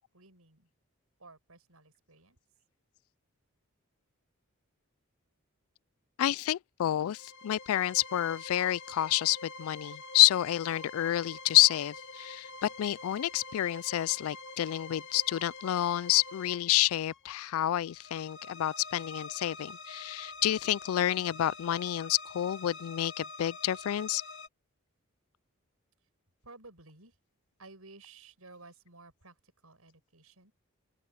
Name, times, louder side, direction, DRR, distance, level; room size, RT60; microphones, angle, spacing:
voice 1, 0.1-0.7 1.2-2.4 26.4-27.2 27.6-30.5, right 3 dB, 90° right, 7.8 m, -54 dB
voice 2, 6.2-24.2, left 13 dB, 80° left, 0.3 m, -29 dB
sound 1, 7.1-24.5, left 3 dB, 60° left, 2.6 m, -46 dB
open air
head